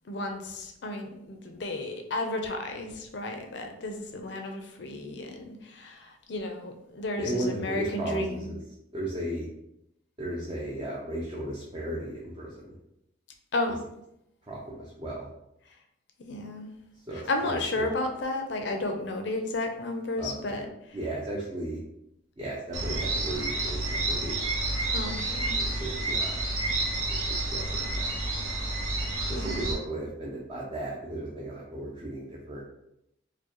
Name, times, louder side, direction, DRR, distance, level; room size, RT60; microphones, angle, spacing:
voice 1, 0.0-8.6 13.5-13.8 16.2-16.7 17.1-21.0 24.9-25.7 29.3-29.8, left 2 dB, 60° left, 4 dB, 0.5 m, -33 dB
voice 2, 7.2-8.4 8.9-9.5 10.2-12.6 14.5-15.3 17.1-17.9 20.2-20.6 20.9-21.8 22.4-24.4 25.6-26.3 27.1-28.1 29.3-32.6, right 1 dB, 25° right, -4 dB, 0.5 m, -35 dB
sound 1, 22.7-29.7, right 2 dB, 90° right, 0.9 m, -30 dB
4.6 x 2.2 x 3.0 m, 0.81 s
head